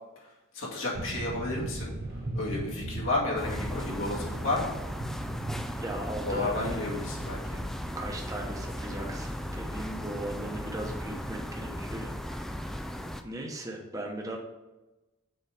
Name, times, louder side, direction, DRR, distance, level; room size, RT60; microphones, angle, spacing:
voice 1, 0.5-1.9 2.3-4.7 6.3-7.6, left 2 dB, 75° left, -4 dB, 2.2 m, -32 dB
sound 1, 0.9-12.5, right 2 dB, 55° right, 1.1 m, -40 dB
sound 2, 3.4-13.2, equal, ahead, 0.4 m, -36 dB
voice 2, 5.8-6.8 7.9-12.9 13.2-14.4, right 1 dB, 15° right, 0 dB, 1.0 m, -38 dB
6.8 x 4.7 x 5.0 m, 1.1 s
head